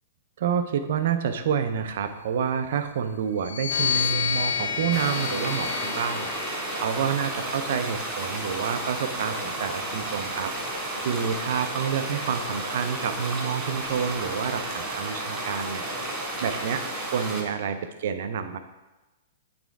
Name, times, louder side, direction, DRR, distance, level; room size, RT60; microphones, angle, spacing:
voice 1, 0.4-18.6, right 7 dB, 60° right, 9 dB, 0.6 m, -29 dB
sound 1, 3.4-7.0 7.8-9.4, left 9 dB, 70° left, 0.4 m, -31 dB
sound 2, 3.7-14.5, left 4 dB, 45° left, 1.0 m, -40 dB
sound 3, 4.9-17.4, right 2 dB, 20° right, 2.3 m, -32 dB
8.9 x 3.5 x 4.7 m, 1.1 s
figure-of-eight pair, 110°, 0 cm